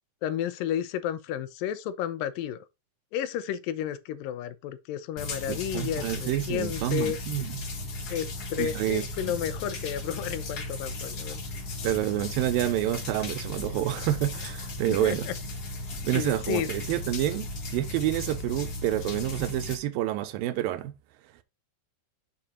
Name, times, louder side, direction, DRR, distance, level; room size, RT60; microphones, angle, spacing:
voice 1, 0.2-2.6 3.1-7.2 8.1-11.4 14.9-15.3 16.1-16.7, left 10 dB, 80° left, 2.4 m, -32 dB
sound 1, 5.2-19.8, left 2 dB, 50° left, 1.1 m, -36 dB
voice 2, 5.5-7.6 8.6-9.0 11.8-15.3 16.0-20.9, right 14 dB, 90° right, 2.5 m, -28 dB
7.1 x 5.2 x 4.1 m
omnidirectional pair, 4.0 m